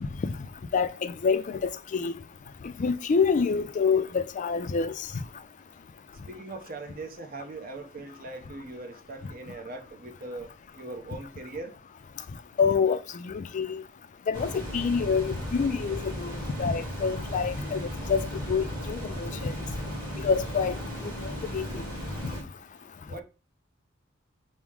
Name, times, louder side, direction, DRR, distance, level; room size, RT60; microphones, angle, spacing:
voice 1, 0.7-2.1 2.8-5.1 12.6-13.8 14.3-18.2 18.5-19.5 20.2-20.8 21.0-21.8, left 5 dB, 40° left, 0.3 m, -27 dB
voice 2, 6.3-10.5 10.8-11.7 23.1-23.2, right 2 dB, 45° right, 0.7 m, -40 dB
sound 1, 14.3-22.4, equal, 20° right, 1.5 m, -35 dB
6.0 x 2.1 x 3.5 m
head